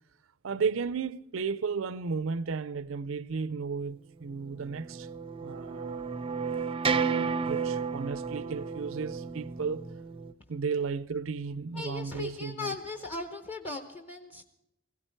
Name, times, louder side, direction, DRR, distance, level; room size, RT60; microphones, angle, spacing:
voice 1, 0.4-5.1 5.4-6.1 7.0-9.9 10.5-12.7, right 5 dB, 75° right, 0.5 m, -34 dB
sound 1, 4.6-10.3, right 5 dB, 25° right, 0.4 m, -32 dB
voice 2, 11.7-14.4, left 3 dB, 30° left, 0.8 m, -38 dB
17.5 x 16.0 x 4.5 m
head